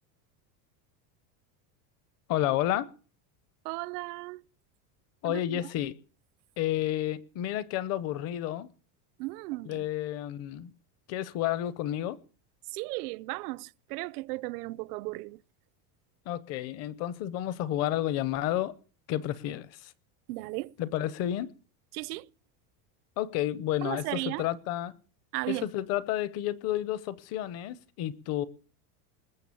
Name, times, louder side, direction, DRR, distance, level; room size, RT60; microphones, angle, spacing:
voice 1, 2.3-2.9 5.2-5.9 6.6-8.7 9.6-10.7 11.1-12.2 16.3-18.7 19.1-19.9 20.8-21.5 23.2-24.9 25.5-28.4, left 12 dB, 35° left, 0.8 m, -31 dB
voice 2, 3.6-4.4 5.2-5.6 9.2-9.9 12.7-15.4 20.3-20.7 21.9-22.3 23.8-24.5 25.3-25.7, right 22 dB, 75° right, 0.7 m, -35 dB
20.0 x 7.4 x 8.5 m
cardioid pair, 180°, 46 cm